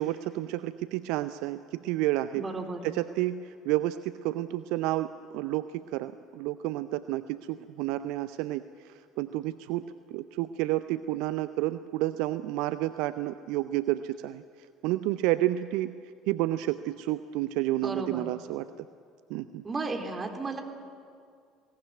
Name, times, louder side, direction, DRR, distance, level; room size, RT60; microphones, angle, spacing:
voice 1, 0.0-2.5 2.8-9.9 10.1-14.4 14.8-16.0 16.3-18.7 19.3-19.6, right 15 dB, 65° right, 12 dB, 0.5 m, -30 dB
voice 2, 2.4-2.8 17.8-18.2 19.6-20.6, right 3 dB, 25° right, 3 dB, 3.5 m, -33 dB
22.0 x 18.0 x 9.4 m, 2.2 s
figure-of-eight pair, 60°, 0 cm